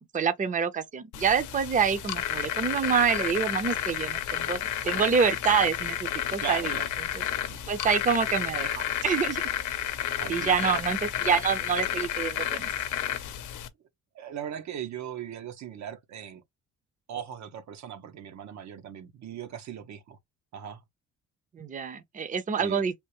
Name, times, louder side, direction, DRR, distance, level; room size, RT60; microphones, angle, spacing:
voice 1, 0.1-6.8 7.1-7.2 7.7-8.7 9.0-9.4 10.3-12.7 21.5-22.9, right 6 dB, 25° right, 0.6 m, -27 dB
sound 1, 1.1-13.7, left 10 dB, 75° left, 0.7 m, -31 dB
voice 2, 6.4-6.8 7.5-7.6 10.2-10.7 14.1-16.4 17.1-20.2 20.5-20.8 22.6-22.8, right 8 dB, 65° right, 0.7 m, -38 dB
3.5 x 2.4 x 2.9 m
cardioid pair, 90°, 30 cm